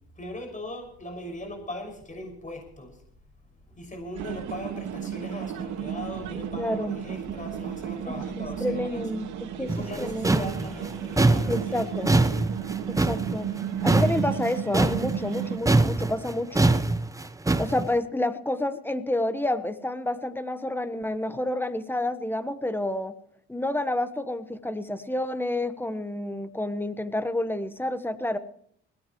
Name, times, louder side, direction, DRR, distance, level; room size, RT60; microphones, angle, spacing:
voice 1, 0.2-3.0 3.7-12.3 12.6-12.9, left 1 dB, 25° left, 3 dB, 6.1 m, -39 dB
sound 1, 4.1-15.6, right 9 dB, 85° right, 2.1 m, -34 dB
voice 2, 6.5-7.0 8.1-10.4 11.5-12.2 12.9-13.5 13.8-16.7 17.6-23.1 23.5-28.4, left 1 dB, 5° left, 11 dB, 1.2 m, -29 dB
sound 2, 9.7-15.4 15.7-17.9, right 2 dB, 10° right, 0.9 m, -23 dB
21.0 x 17.0 x 3.1 m, 0.68 s
cardioid pair, 90°, 30 cm